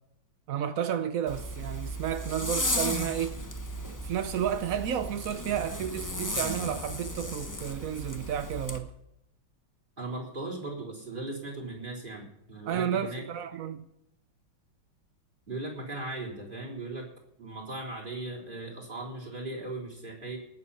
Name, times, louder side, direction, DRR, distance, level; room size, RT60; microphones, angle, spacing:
voice 1, 0.5-3.4 3.9-8.9 12.7-13.8, right 9 dB, 70° right, 0.8 m, -32 dB
Zipper (clothing), 1.3-8.8, left 1 dB, 15° left, 0.6 m, -35 dB
voice 2, 10.0-13.2 15.5-17.1 17.4-20.4, right 2 dB, 25° right, 3.8 m, -38 dB
19.0 x 7.7 x 5.6 m
omnidirectional pair, 2.3 m